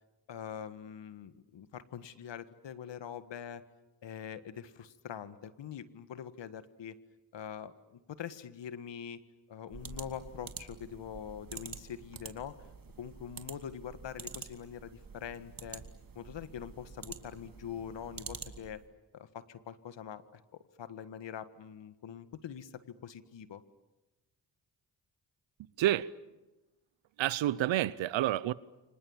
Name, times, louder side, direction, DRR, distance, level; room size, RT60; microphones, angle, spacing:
voice 1, 0.3-3.6 4.0-7.0 7.3-9.2 9.5-12.7 13.0-15.8 16.2-18.8 19.1-23.6, left 8 dB, 70° left, 1.8 m, -44 dB
sound 1, 9.7-18.8, right 5 dB, 45° right, 2.7 m, -47 dB
voice 2, 25.8-26.1 27.2-28.5, right 13 dB, 80° right, 0.9 m, -29 dB
30.0 x 26.0 x 7.3 m
supercardioid pair, 45°, 45 cm